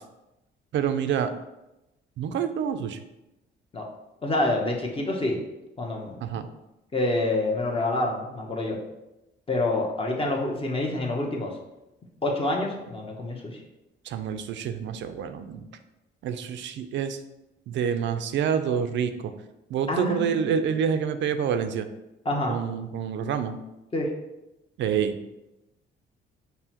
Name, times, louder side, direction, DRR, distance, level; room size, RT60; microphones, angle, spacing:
voice 1, 0.7-1.3 2.2-3.0 6.2-6.5 14.0-15.7 16.2-17.2 17.7-19.3 19.7-21.9 22.5-23.6 24.8-25.2, right 7 dB, 65° right, 9 dB, 0.4 m, -27 dB
voice 2, 4.2-5.4 5.8-6.4 6.9-8.8 9.5-11.5 12.2-13.6 19.9-20.6 22.2-22.6 23.9-24.1, left 2 dB, 25° left, 0 dB, 0.8 m, -27 dB
5.5 x 2.1 x 2.9 m, 0.94 s
cardioid pair, 90°, 20 cm